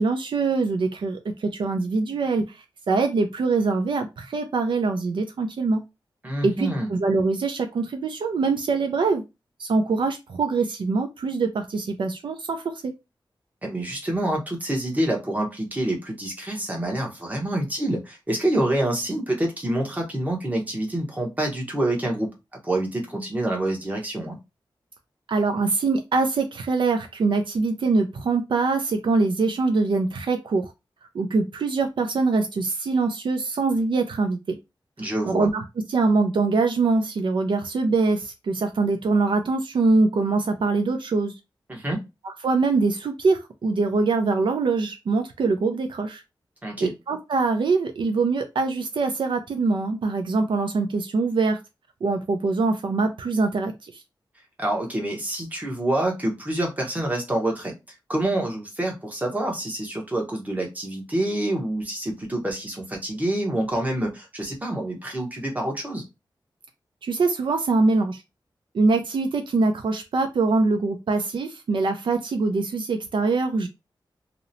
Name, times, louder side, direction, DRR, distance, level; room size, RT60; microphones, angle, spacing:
voice 1, 0.0-5.8 6.4-9.2 9.6-12.9 25.3-30.7 31.1-34.6 35.2-41.3 42.2-46.2 46.8-51.6 52.0-54.0 67.0-68.2 68.7-73.7, right 3 dB, 70° right, 5 dB, 0.4 m, -23 dB
voice 2, 6.2-6.9 13.6-22.3 22.6-24.4 35.0-35.5 41.7-42.0 46.6-46.9 54.6-57.7 58.1-66.0, right 1 dB, 20° right, 1 dB, 0.8 m, -27 dB
2.8 x 2.0 x 2.5 m, 0.24 s
wide cardioid pair, 135°, 9 cm